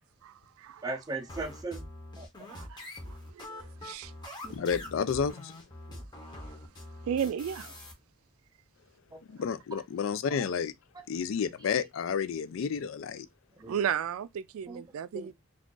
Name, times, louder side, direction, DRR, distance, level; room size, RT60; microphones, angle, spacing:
voice 1, 0.2-0.8 2.5-4.4 5.9-6.0 7.1-7.7 13.7-15.3, right 8 dB, 85° right, 0.3 m, -35 dB
voice 2, 0.8-1.9 2.2-2.5 4.4-4.5 9.1-9.2 10.3-10.4 13.5-13.8 14.7-14.8 15.1-15.3, right 3 dB, 20° right, 0.4 m, -38 dB
sound 1, 1.3-7.9, left 1 dB, 20° left, 0.7 m, -44 dB
voice 3, 4.5-5.5 9.3-10.7 11.1-13.3, left 6 dB, 70° left, 0.4 m, -31 dB
2.4 x 2.4 x 3.7 m
head